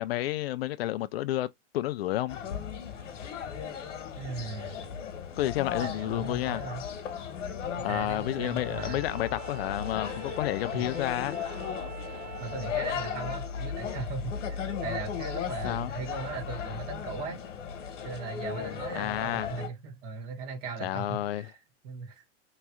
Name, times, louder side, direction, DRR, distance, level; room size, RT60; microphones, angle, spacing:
voice 1, 0.0-1.5 1.7-2.4 5.4-6.6 7.8-11.4 15.6-15.9 18.9-19.5 20.8-21.5, left 14 dB, 55° left, 0.5 m, -30 dB
sound 1, 2.3-19.7, left 7 dB, 85° left, 1.3 m, -36 dB
voice 2, 4.1-5.0 5.8-6.8 7.8-9.0 10.7-10.8 12.4-17.4 18.0-21.5 21.8-22.2, right 4 dB, 45° right, 1.8 m, -38 dB
Bowed string instrument, 8.2-13.3, right 8 dB, 75° right, 1.3 m, -45 dB
3.7 x 3.1 x 2.2 m
hypercardioid pair, 150°, 36 cm